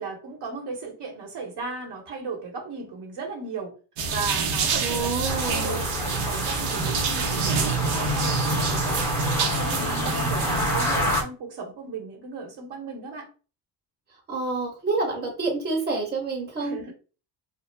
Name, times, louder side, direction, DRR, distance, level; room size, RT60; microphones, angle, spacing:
voice 1, 0.0-3.7 4.1-9.0 9.4-13.3 16.6-16.9, right 4 dB, 50° right, 2 dB, 1.0 m, -36 dB
sound 1, 4.0-11.2, right 4 dB, 80° right, 0.7 m, -26 dB
voice 2, 4.8-5.8 14.3-16.9, right 3 dB, 20° right, 0 dB, 0.8 m, -28 dB
sound 2, 5.3-11.2, left 2 dB, 5° left, 0.5 m, -29 dB
2.0 x 2.0 x 3.2 m, 0.34 s
supercardioid pair, 85°, 49 cm